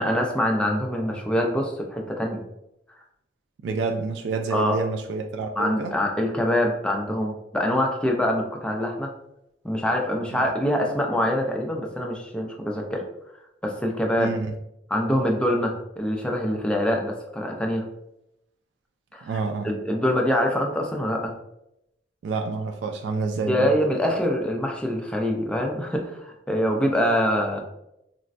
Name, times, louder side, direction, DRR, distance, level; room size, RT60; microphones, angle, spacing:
voice 1, 0.0-2.4 4.5-4.8 5.6-9.1 9.6-13.0 13.6-14.3 14.9-17.8 19.1-19.4 19.6-21.3 23.5-27.6, equal, 5° left, 0 dB, 0.4 m, -24 dB
voice 2, 3.6-6.0 14.2-14.5 19.2-19.7 22.2-23.7, right 4 dB, 90° right, 5 dB, 0.3 m, -28 dB
4.0 x 2.1 x 2.5 m, 0.83 s
head